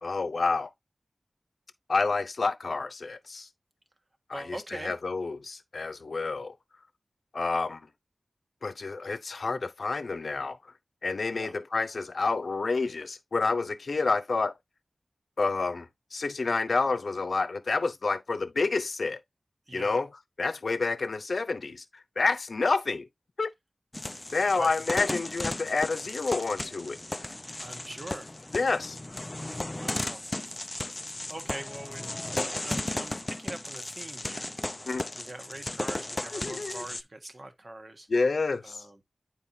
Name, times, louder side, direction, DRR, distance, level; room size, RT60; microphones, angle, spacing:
voice 1, 0.0-0.7 1.9-3.5 4.3-6.5 7.3-7.9 8.6-10.6 11.0-14.5 15.4-19.2 19.7-20.1 20.4-21.8 22.2-23.1 23.4-23.5 24.3-27.0 28.5-29.0 34.9-35.0 36.3-36.8 38.1-38.8, left 3 dB, 75° left, 0.7 m, -29 dB
voice 2, 4.3-5.0 11.3-11.5 19.7-20.0 24.5-24.8 27.6-28.3 29.7-30.2 31.3-34.5 35.1-38.1 38.6-39.0, right 1 dB, 45° right, 1.4 m, -42 dB
sound 1, 23.9-37.0, left 2 dB, 25° left, 0.4 m, -35 dB
9.3 x 4.4 x 2.7 m
wide cardioid pair, 75°, 0 cm